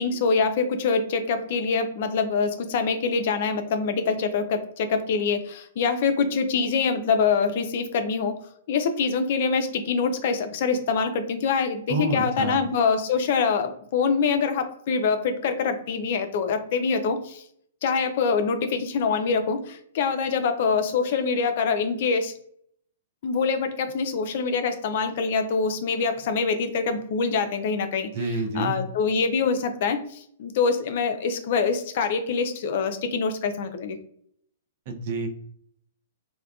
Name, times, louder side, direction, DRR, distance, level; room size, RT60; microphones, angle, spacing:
voice 1, 0.0-8.3 8.7-17.4 17.8-22.3 23.2-28.1 28.6-34.0, left 5 dB, 55° left, 8 dB, 0.4 m, -25 dB
voice 2, 11.9-12.6 28.1-28.8 34.9-35.3, right 2 dB, 50° right, 3 dB, 0.6 m, -28 dB
3.4 x 2.1 x 2.3 m, 0.66 s
hypercardioid pair, 120°, 0 cm